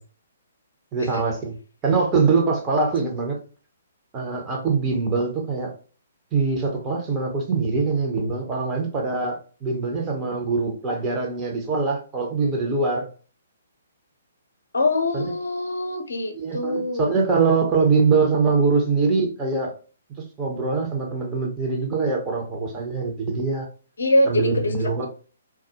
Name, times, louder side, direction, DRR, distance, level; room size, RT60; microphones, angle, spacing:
voice 1, 0.9-1.6 1.8-3.4 4.1-5.7 6.3-13.1 15.1-15.2 16.3-19.7 20.4-23.7 24.3-25.1, right 4 dB, 20° right, -1 dB, 0.6 m, -23 dB
voice 2, 14.7-17.1 24.0-24.7 25.0-25.1, left 1 dB, 65° left, 4 dB, 0.5 m, -23 dB
2.3 x 2.0 x 2.7 m, 0.37 s
figure-of-eight pair, 125°, 0 cm